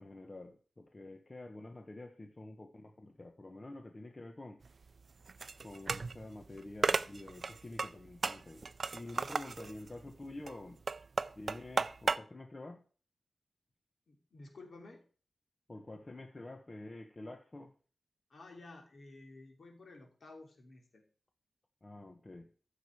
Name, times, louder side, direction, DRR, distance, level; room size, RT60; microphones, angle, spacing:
voice 1, 0.0-4.6 5.6-8.7 8.9-10.8 11.4-12.8 15.7-17.7 21.8-22.5, left 2 dB, 30° left, 5 dB, 1.1 m, -48 dB
sound 1, 4.6-12.2, right 4 dB, 50° right, 0.4 m, -36 dB
voice 2, 14.1-15.0 18.3-21.0, left 2 dB, 60° left, 2 dB, 3.1 m, -53 dB
14.0 x 6.9 x 4.8 m, 0.40 s
wide cardioid pair, 105°, 0 cm